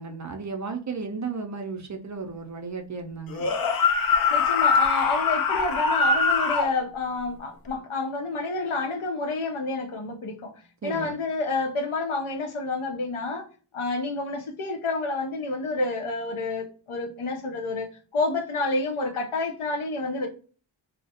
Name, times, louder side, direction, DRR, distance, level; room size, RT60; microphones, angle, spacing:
voice 1, 0.0-3.5 10.8-11.1, right 4 dB, 40° right, 0.4 m, -34 dB
sound 1, 3.3-6.7, left 5 dB, 50° left, 0.4 m, -22 dB
voice 2, 4.0-10.5 10.8-13.5 13.7-20.3, left 3 dB, 85° left, 0.7 m, -29 dB
2.3 x 2.0 x 2.7 m
wide cardioid pair, 70°, 48 cm